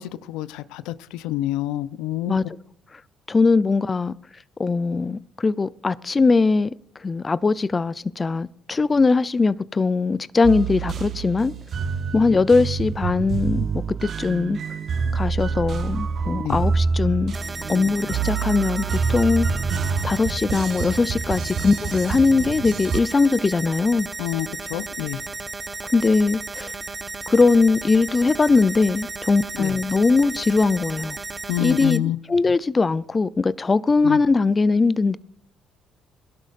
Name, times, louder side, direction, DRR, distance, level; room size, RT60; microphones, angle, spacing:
voice 1, 0.0-2.3 16.4-16.6 24.2-25.2 29.6-29.7 31.5-32.2 34.0-34.2, left 14 dB, 85° left, 0.6 m, -27 dB
voice 2, 3.3-4.1 4.6-6.7 7.0-11.5 12.1-14.6 15.1-17.4 17.7-19.5 20.0-24.1 25.9-26.7 27.3-31.2 31.6-35.2, left 4 dB, 30° left, 0.5 m, -20 dB
sound 1, 10.4-23.0, right 5 dB, 50° right, 0.8 m, -27 dB
sound 2, 17.3-32.0, right 3 dB, 30° right, 1.0 m, -34 dB
21.0 x 12.0 x 2.5 m
supercardioid pair, 80°, 0 cm